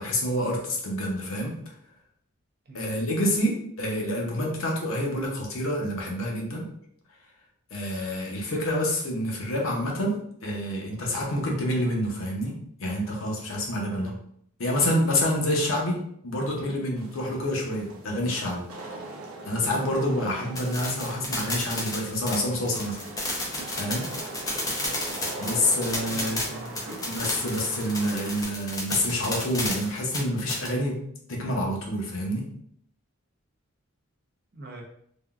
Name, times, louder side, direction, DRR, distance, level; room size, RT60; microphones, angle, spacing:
voice 1, 0.0-1.6 2.7-6.7 7.7-12.5 12.8-14.1 14.6-18.6 19.5-23.0 23.7-24.1 25.4-26.4 27.1-31.0 31.3-32.4, left 1 dB, 65° left, -1 dB, 0.7 m, -27 dB
voice 2, 2.7-3.0 13.8-14.2 26.1-26.8 34.5-34.8, right 1 dB, 45° right, 0 dB, 0.5 m, -42 dB
Wind / Rain, 17.0-28.4, right 2 dB, 85° right, 0.6 m, -41 dB
sound 1, 20.6-30.7, left 1 dB, 15° left, 0.5 m, -32 dB
3.5 x 2.2 x 2.4 m, 0.68 s
head